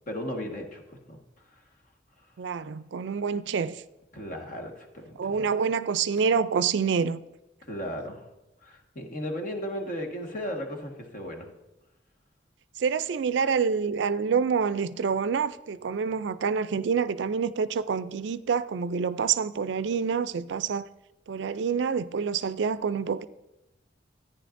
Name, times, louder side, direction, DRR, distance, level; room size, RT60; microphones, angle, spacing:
voice 1, 0.1-1.2 1.4-1.6 2.2-2.3 4.1-5.5 7.6-8.3 8.6-11.5, equal, 45° left, 1.5 m, -36 dB
voice 2, 2.4-3.8 5.2-7.2 12.8-20.9 21.3-23.3, right 6 dB, 65° right, 0.4 m, -27 dB
14.5 x 9.8 x 2.6 m
head